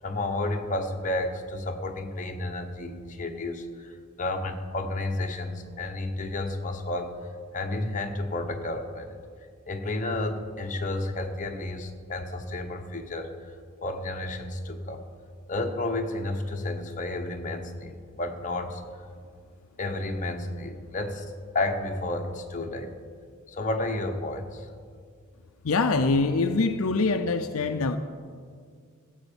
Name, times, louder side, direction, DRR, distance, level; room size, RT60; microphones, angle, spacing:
voice 1, 0.0-7.2 7.5-9.2 9.7-13.5 13.8-15.0 15.5-18.8 19.8-22.9 23.5-24.7, left 2 dB, 35° left, 3 dB, 1.1 m, -31 dB
voice 2, 25.6-28.0, left 3 dB, 75° left, 7 dB, 0.6 m, -24 dB
15.5 x 8.0 x 7.1 m, 2.1 s
head